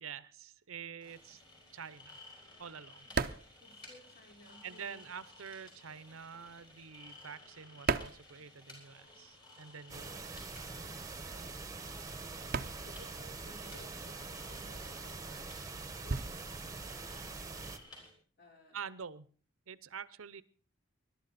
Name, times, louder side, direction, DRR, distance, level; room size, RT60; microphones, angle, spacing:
voice 1, 0.0-1.4 1.7-2.2 2.6-3.1 4.6-10.2 18.7-19.3 19.7-20.4, right 7 dB, 80° right, 17 dB, 0.7 m, -47 dB
sound 1, 1.0-18.1, left 2 dB, 20° left, 5.3 m, -57 dB
sound 2, 1.3-4.7 4.9-9.1 9.3-18.1, right 4 dB, 45° right, 0.6 m, -40 dB
voice 2, 3.6-5.0 11.3-12.0 12.8-15.7 16.0-18.1 18.4-18.9, left 1 dB, 45° left, 1 dB, 4.5 m, -59 dB
sound 3, 9.9-17.8, right 3 dB, 15° right, 1.1 m, -44 dB
21.0 x 11.5 x 4.2 m, 0.41 s
head